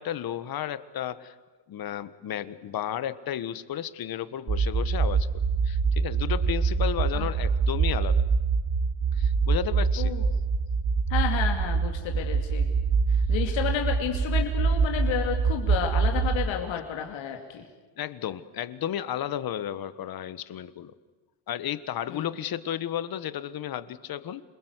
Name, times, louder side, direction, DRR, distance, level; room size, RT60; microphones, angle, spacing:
voice 1, 0.0-1.3 1.7-5.3 5.6-8.3 9.1-10.1 18.0-20.9 21.5-24.4, left 10 dB, 45° left, 15 dB, 1.3 m, -33 dB
sound 1, 4.5-16.5, right 5 dB, 40° right, 2.2 m, -25 dB
voice 2, 11.1-12.7 13.1-17.7 22.1-22.3, left 9 dB, 70° left, 3 dB, 2.7 m, -31 dB
28.0 x 21.0 x 8.1 m, 1.3 s
cardioid pair, 120°, 48 cm